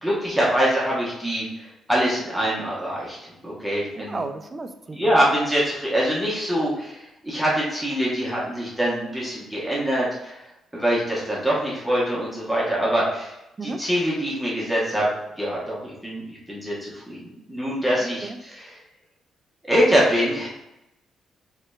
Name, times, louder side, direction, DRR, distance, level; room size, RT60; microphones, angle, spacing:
voice 1, 0.0-3.2 3.4-4.2 4.9-10.4 10.7-13.3 13.6-15.1 15.4-18.8 19.6-20.5, equal, 5° right, -6 dB, 1.1 m, -24 dB
voice 2, 4.0-5.2 13.6-13.9 18.0-18.4, right 3 dB, 25° right, 8 dB, 0.3 m, -34 dB
3.7 x 3.2 x 2.3 m, 0.89 s
cardioid pair, 95°, 0 cm